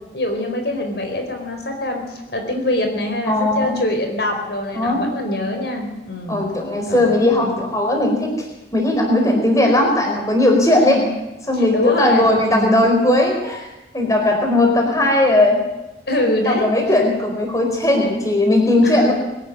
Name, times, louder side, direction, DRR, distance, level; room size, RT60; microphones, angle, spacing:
voice 1, 0.1-6.4 6.9-7.5 10.8-11.1 11.5-12.8 16.1-16.7 18.8-19.1, left 1 dB, 65° left, 4 dB, 4.4 m, -24 dB
voice 2, 3.3-3.8 4.7-5.0 6.3-8.5 8.7-11.0 11.5-13.7 13.9-15.6 16.2-19.1, left 1 dB, 20° left, 2 dB, 4.4 m, -17 dB
23.0 x 12.5 x 9.5 m, 1.0 s
head